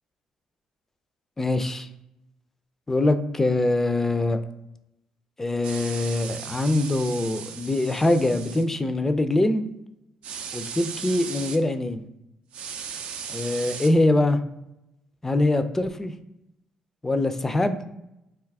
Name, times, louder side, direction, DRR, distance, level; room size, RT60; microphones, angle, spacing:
voice 1, 1.4-1.9 2.9-4.4 5.4-9.6 10.5-12.1 13.3-14.4 15.2-16.1 17.0-17.8, left 2 dB, 15° left, 9 dB, 0.3 m, -23 dB
sound 1, 5.6-8.6 10.2-11.6 12.5-13.9, right 7 dB, 70° right, 0.3 m, -37 dB
2.7 x 2.3 x 3.4 m, 0.88 s
supercardioid pair, 75°, 2 cm